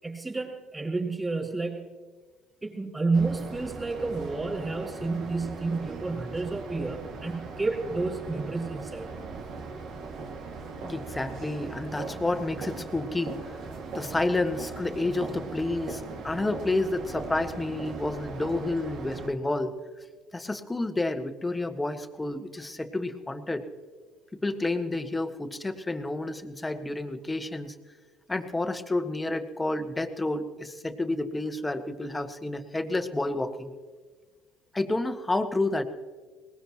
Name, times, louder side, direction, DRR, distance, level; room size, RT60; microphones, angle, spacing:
voice 1, 0.0-1.9 2.6-9.1, right 3 dB, 20° right, -1 dB, 5.6 m, -30 dB
sound 1, 3.1-19.3, right 4 dB, 65° right, 2.1 m, -39 dB
voice 2, 10.8-13.6 13.9-19.7 20.3-23.7 24.4-27.7 28.3-33.7 34.7-35.8, left 2 dB, 15° left, 8 dB, 1.6 m, -30 dB
22.5 x 19.5 x 3.0 m, 1.5 s
hypercardioid pair, 65°, 0 cm